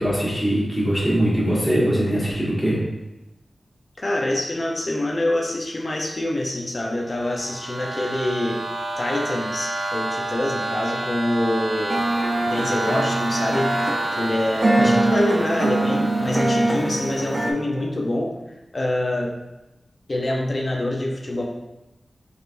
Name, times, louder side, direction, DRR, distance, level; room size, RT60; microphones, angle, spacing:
voice 1, 0.0-2.8 14.8-14.9, equal, 10° left, -6 dB, 1.3 m, -21 dB
voice 2, 4.0-8.6 9.0-12.1 12.5-13.9 14.2-18.3 18.7-19.3 20.1-21.4, left 1 dB, 35° left, -1 dB, 0.6 m, -25 dB
sound 1, 7.0-16.7, right 2 dB, 85° right, 0.7 m, -29 dB
sound 2, 11.9-17.5, right 2 dB, 45° right, 0.6 m, -23 dB
5.0 x 3.3 x 2.5 m, 0.98 s
wide cardioid pair, 95°, 0 cm